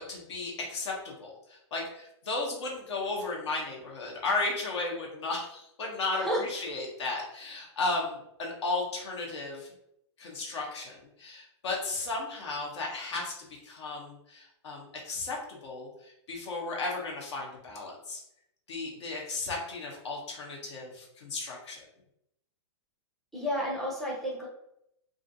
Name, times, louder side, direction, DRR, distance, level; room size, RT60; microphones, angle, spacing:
voice 1, 0.0-9.7 10.2-13.3 13.6-18.2 18.7-21.8, left 3 dB, 65° left, -1 dB, 0.8 m, -35 dB
voice 2, 23.3-24.5, equal, ahead, -5 dB, 0.4 m, -31 dB
2.4 x 2.3 x 2.6 m, 0.79 s
hypercardioid pair, 165°, 15 cm